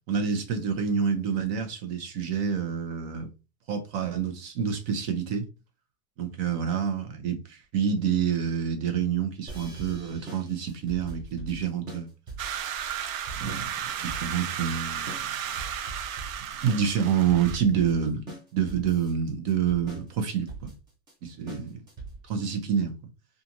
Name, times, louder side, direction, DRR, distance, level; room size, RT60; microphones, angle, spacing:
voice 1, 0.1-3.3 3.7-5.5 6.2-12.1 13.4-13.7 14.0-15.1 16.6-18.3 18.5-20.7 21.2-21.8 22.3-23.0, right 7 dB, 35° right, 0.7 m, -27 dB
sound 1, 9.5-22.4, right 3 dB, 10° right, 0.4 m, -42 dB
sound 2, 12.4-17.6, right 9 dB, 75° right, 0.6 m, -34 dB
2.9 x 2.5 x 2.5 m
supercardioid pair, 150°, 42 cm